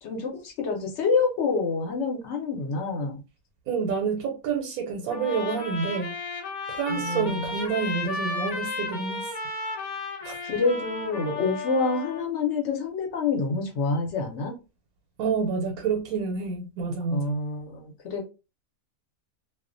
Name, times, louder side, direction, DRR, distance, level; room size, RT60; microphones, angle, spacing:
voice 1, 0.0-3.2 6.9-7.5 10.4-14.5 17.1-18.3, left 4 dB, 60° left, 0.9 m, -27 dB
voice 2, 3.7-6.1 6.7-9.3 10.2-10.4 15.2-17.4, right 5 dB, 90° right, 1.1 m, -28 dB
Trumpet, 5.1-12.3, left 3 dB, 80° left, 1.0 m, -33 dB
2.4 x 2.1 x 2.5 m
omnidirectional pair, 1.5 m